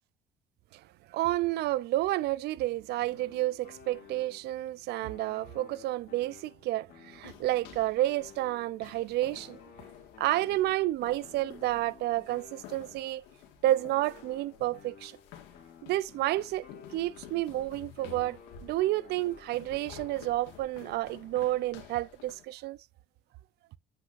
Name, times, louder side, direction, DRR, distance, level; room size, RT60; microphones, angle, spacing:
voice 1, 1.1-9.6 10.2-13.2 13.6-15.2 15.8-16.6 16.9-18.4 18.6-22.8, right 16 dB, 75° right, 0.6 m, -30 dB
sound 1, 3.1-4.6 5.0-8.9 9.3-13.2 13.6-17.6 18.0-19.8, left 7 dB, 65° left, 2.7 m, -54 dB
sound 2, 7.1-22.4, left 9 dB, 90° left, 1.9 m, -52 dB
7.7 x 6.0 x 2.6 m
supercardioid pair, 85°, 17 cm